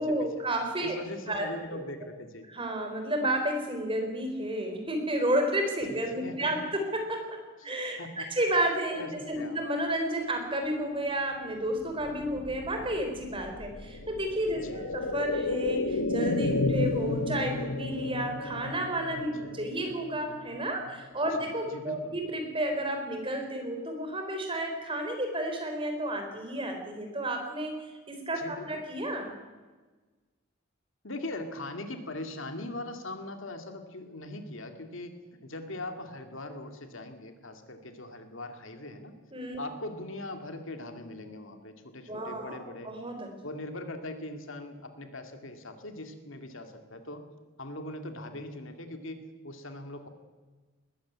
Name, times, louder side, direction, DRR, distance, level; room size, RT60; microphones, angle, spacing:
voice 1, 0.0-1.0 1.3-1.5 2.5-27.7 28.1-29.3 39.3-39.6 42.1-43.3, right 1 dB, 25° right, 4 dB, 3.8 m, -31 dB
voice 2, 0.8-2.5 5.9-6.7 7.6-8.3 9.0-9.6 14.5-14.9 19.3-19.6 21.3-22.1 28.4-28.8 31.0-39.2 39.6-42.9 43.4-47.3 47.6-50.1, left 1 dB, 65° left, 6 dB, 2.3 m, -41 dB
sound 1, 11.7-21.5 21.8-21.9, left 2 dB, 90° left, 1.2 m, -33 dB
20.5 x 15.0 x 9.4 m, 1.3 s
head